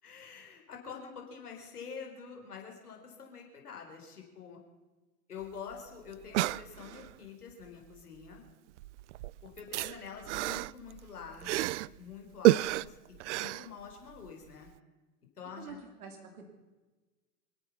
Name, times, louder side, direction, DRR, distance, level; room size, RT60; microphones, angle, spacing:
voice 1, 0.0-4.6 5.3-8.5 9.4-13.0 13.4-14.7 15.4-15.8, left 6 dB, 90° left, 1 dB, 4.1 m, -46 dB
sound 1, 5.4-5.5 5.7-5.8 6.1-7.2 8.2-8.5 8.8-12.0 12.4-14.3 14.7-14.8, right 17 dB, 55° right, 0.5 m, -30 dB
voice 2, 15.5-16.5, right 5 dB, 75° right, 4 dB, 3.3 m, -47 dB
27.0 x 9.3 x 5.7 m, 1.2 s
hypercardioid pair, 115°, 44 cm